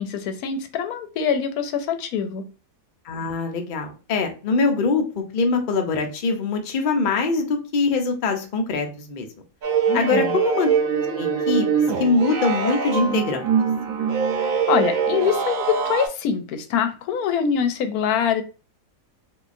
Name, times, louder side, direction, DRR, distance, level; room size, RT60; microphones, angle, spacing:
voice 1, 0.0-2.5 9.9-10.4 14.7-18.4, left 7 dB, 70° left, 1.0 m, -24 dB
voice 2, 3.1-9.3 9.9-10.7 11.1-11.7 12.0-13.5, left 4 dB, 90° left, 0.4 m, -23 dB
sound 1, 9.6-16.1, right 6 dB, 65° right, 1.0 m, -23 dB
3.7 x 2.7 x 2.4 m
omnidirectional pair, 1.7 m